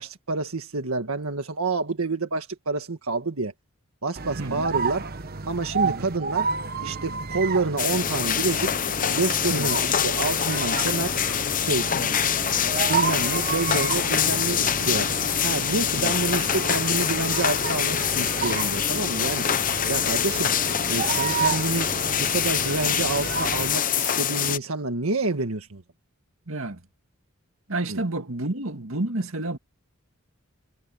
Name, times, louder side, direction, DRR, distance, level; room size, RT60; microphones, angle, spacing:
voice 1, 0.0-3.5 4.0-5.1 5.5-6.5 6.8-8.8 9.1-11.1 11.6-11.9 12.9-15.1 15.4-19.5 19.9-20.5 20.9-21.9 22.2-25.8 27.9-28.0, right 3 dB, 90° right, 1.6 m, -28 dB
sound 1, 4.1-23.8, right 5 dB, 45° right, 1.2 m, -31 dB
sound 2, 7.8-24.6, left 9 dB, 40° left, 0.8 m, -25 dB
voice 2, 11.9-12.2 15.9-16.1 21.3-21.4 26.5-26.8 27.7-29.6, right 2 dB, 70° right, 2.2 m, -30 dB
head